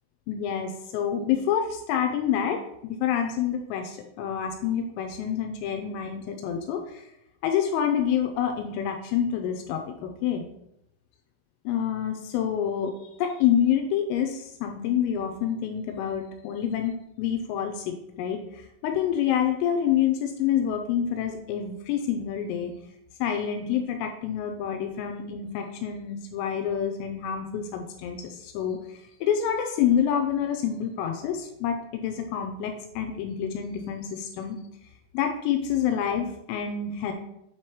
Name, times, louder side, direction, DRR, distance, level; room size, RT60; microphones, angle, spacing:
voice 1, 0.3-7.1 7.4-10.4 11.7-12.9 13.2-22.7 23.2-28.8 29.2-34.6 35.1-37.1, left 9 dB, 85° left, 4 dB, 3.1 m, -27 dB
7.8 x 3.0 x 4.7 m, 0.78 s
omnidirectional pair, 5.7 m